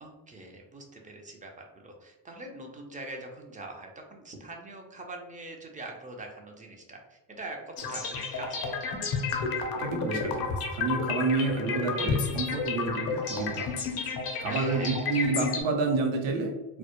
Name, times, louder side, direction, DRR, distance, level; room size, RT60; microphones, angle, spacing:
voice 1, 0.0-8.8 14.5-15.1, right 2 dB, 20° right, 2 dB, 0.4 m, -43 dB
sound 1, 7.8-15.6, left 5 dB, 50° left, 0.6 m, -31 dB
voice 2, 9.7-13.8 14.4-16.8, right 3 dB, 70° right, 2 dB, 0.7 m, -29 dB
2.1 x 2.0 x 2.8 m, 1.0 s
cardioid pair, 85°, 48 cm